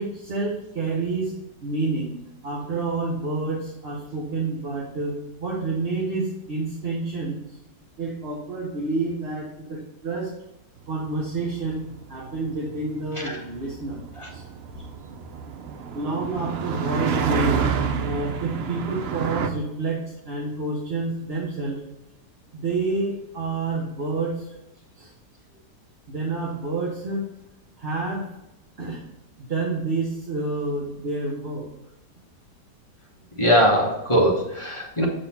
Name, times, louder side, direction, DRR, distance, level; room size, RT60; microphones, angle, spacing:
voice 1, 0.0-1.3 1.6-2.1 2.4-5.1 5.4-7.6 8.0-10.3 10.9-11.8 12.1-14.0 14.3-14.4 15.9-17.6 18.0-21.8 22.5-24.5 25.0-25.1 26.1-27.2 27.8-28.2 28.8-29.0 29.4-31.7, right 3 dB, 40° right, -3 dB, 1.2 m, -28 dB
sound 1, 11.0-19.5, right 6 dB, 80° right, 0.5 m, -29 dB
voice 2, 33.4-35.1, equal, 20° left, -2 dB, 1.1 m, -21 dB
7.8 x 4.1 x 4.2 m, 0.92 s
omnidirectional pair, 1.8 m